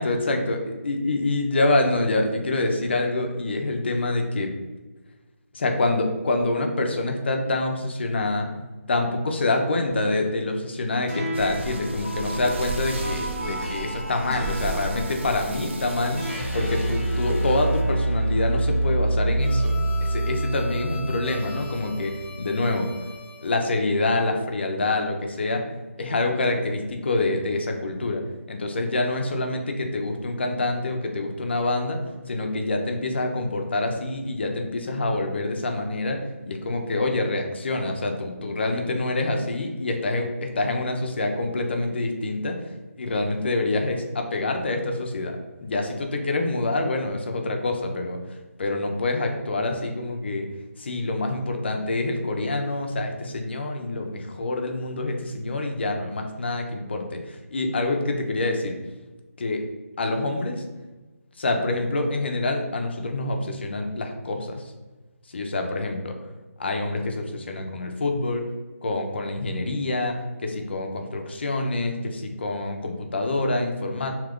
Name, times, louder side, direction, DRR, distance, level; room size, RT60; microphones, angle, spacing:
voice 1, 0.0-4.5 5.5-8.5 8.9-16.2 16.5-22.9 23.4-25.6 26.0-28.2 28.5-32.0 32.3-42.6 43.0-48.2 48.6-50.5 50.8-58.8 59.4-59.6 60.0-60.6 61.4-64.6 65.3-66.1 66.6-68.5 68.8-74.2, left 2 dB, 45° left, 3 dB, 0.5 m, -26 dB
sound 1, 11.1-23.6, right 1 dB, 5° left, 0.8 m, -28 dB
sound 2, 11.3-18.0, right 2 dB, 50° right, 0.4 m, -35 dB
2.8 x 2.4 x 3.5 m, 1.2 s
figure-of-eight pair, 170°, 8 cm